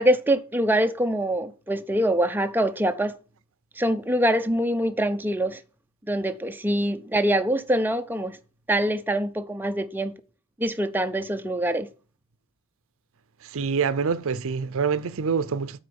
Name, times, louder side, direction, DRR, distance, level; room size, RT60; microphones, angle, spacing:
voice 1, 0.0-3.1 3.8-5.6 6.1-8.4 8.7-10.1 10.6-11.9, right 1 dB, 10° right, 0.6 m, -24 dB
voice 2, 13.4-15.8, right 5 dB, 65° right, 0.6 m, -26 dB
8.6 x 4.4 x 6.9 m
head